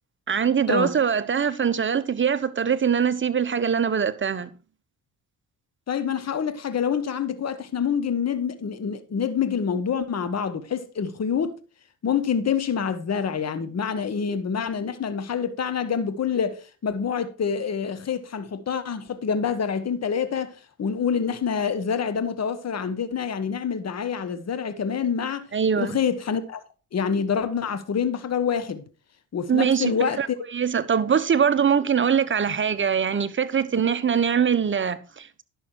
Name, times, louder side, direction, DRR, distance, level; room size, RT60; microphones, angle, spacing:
voice 1, 0.3-4.5 25.5-26.0 29.5-30.3 30.5-35.4, right 7 dB, 30° right, 1.0 m, -23 dB
voice 2, 5.9-11.6 12.0-20.5 20.8-25.5 25.8-26.6 26.9-28.8 29.3-30.4, left 7 dB, 40° left, 1.3 m, -26 dB
11.0 x 6.3 x 4.6 m
supercardioid pair, 65°, 38 cm